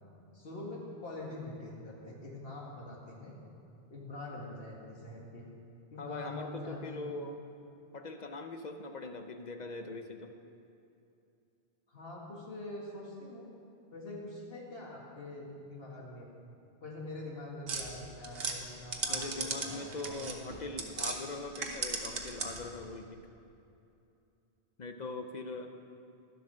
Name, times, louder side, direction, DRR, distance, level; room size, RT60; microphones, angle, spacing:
voice 1, 0.3-3.3 3.9-5.5 5.9-7.3 11.9-13.5 13.9-16.3 16.8-20.6, left 2 dB, 70° left, -3 dB, 2.1 m, -44 dB
voice 2, 6.0-7.4 7.9-10.4 19.1-23.2 24.8-25.7, left 3 dB, 50° left, 6 dB, 0.7 m, -41 dB
sound 1, 17.7-21.2 21.5-22.7, right 4 dB, 70° right, 1.2 m, -37 dB
12.0 x 7.8 x 6.1 m, 2.7 s
omnidirectional pair, 1.0 m